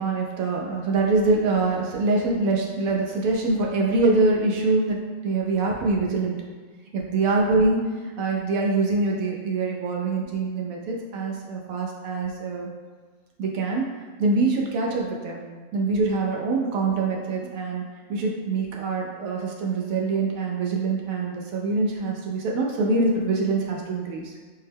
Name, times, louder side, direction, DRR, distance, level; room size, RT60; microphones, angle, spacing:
voice 1, 0.0-6.4 6.9-7.8 8.2-12.7 13.4-13.9 14.2-15.5 15.7-17.8 18.1-24.3, right 3 dB, 85° right, -1 dB, 1.1 m, -24 dB
4.3 x 2.1 x 3.4 m, 1.4 s
omnidirectional pair, 1.4 m